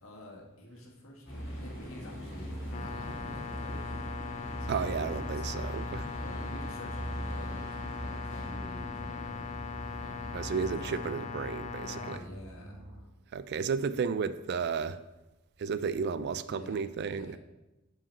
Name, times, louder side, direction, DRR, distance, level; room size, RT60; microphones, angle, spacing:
voice 1, 0.0-4.1 4.5-9.4 9.9-10.4 10.8-11.3 11.8-12.8 16.5-17.4, left 1 dB, 80° left, -1 dB, 1.5 m, -49 dB
sound 1, 1.3-10.8, equal, 60° left, 2.0 m, -40 dB
sound 2, 2.4-13.0, equal, 5° left, 2.6 m, -48 dB
sound 3, 2.7-12.2, left 5 dB, 35° left, 0.4 m, -40 dB
voice 2, 4.7-6.0 10.3-12.2 13.3-15.0 15.6-17.4, right 6 dB, 50° right, 14 dB, 0.3 m, -33 dB
5.9 x 4.7 x 5.3 m, 1.0 s
head